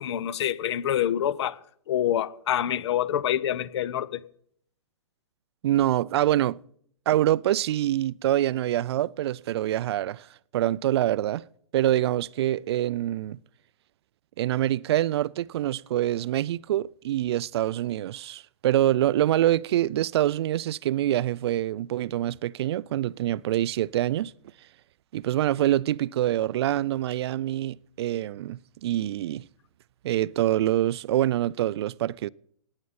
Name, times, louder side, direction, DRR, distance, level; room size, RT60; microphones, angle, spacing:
voice 1, 0.0-1.6 1.9-4.2, left 11 dB, 55° left, 0.7 m, -26 dB
voice 2, 5.6-6.6 7.1-10.3 10.5-11.4 11.7-13.4 14.4-24.3 25.1-29.4 30.0-32.3, right 13 dB, 50° right, 0.4 m, -25 dB
17.5 x 9.6 x 4.1 m
hypercardioid pair, 120°, 17 cm